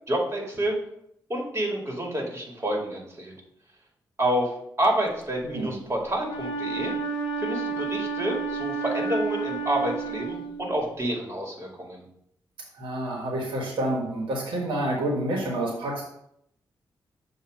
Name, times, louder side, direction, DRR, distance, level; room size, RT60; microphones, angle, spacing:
voice 1, 0.1-0.8 1.3-3.3 4.2-6.9 7.4-12.0, right 1 dB, 30° right, -1 dB, 2.1 m, -28 dB
voice 2, 5.4-5.8 12.7-16.0, right 1 dB, 85° right, -1 dB, 1.4 m, -28 dB
Wind instrument woodwind instrument, 6.2-11.0, right 4 dB, 85° left, 0.7 m, -31 dB
7.0 x 2.7 x 5.3 m, 0.74 s
cardioid pair, 65°, 8 cm